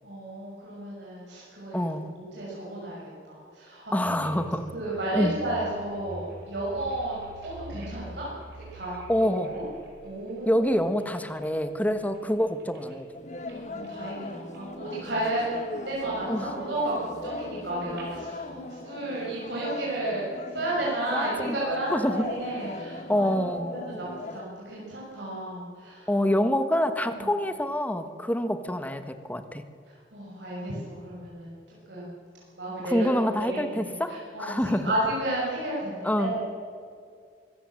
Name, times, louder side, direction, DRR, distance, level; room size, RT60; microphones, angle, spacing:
voice 1, 0.0-1.8 2.2-4.4 4.7-7.2 7.4-8.3 8.7-9.6 10.0-10.6 13.4-15.4 15.9-20.2 20.5-26.1 27.1-27.3 29.9-31.6 31.9-32.2 32.5-36.5, right 1 dB, 85° right, -6 dB, 6.3 m, -33 dB
voice 2, 1.7-2.1 3.9-4.7 5.1-5.4 9.1-9.5 10.5-13.1 16.3-16.5 21.1-21.6 21.9-22.2 23.1-23.7 26.1-29.6 32.9-34.9 36.0-36.3, equal, 10° left, 9 dB, 1.2 m, -26 dB
sound 1, 4.0-11.5 11.9-12.9 13.3-13.6 13.8-14.7 15.0-15.6 15.9-18.3, right 1 dB, 60° right, 5.0 m, -47 dB
sound 2, 13.1-24.4, left 2 dB, 45° left, 1.1 m, -39 dB
24.5 x 15.0 x 7.6 m, 2.2 s
head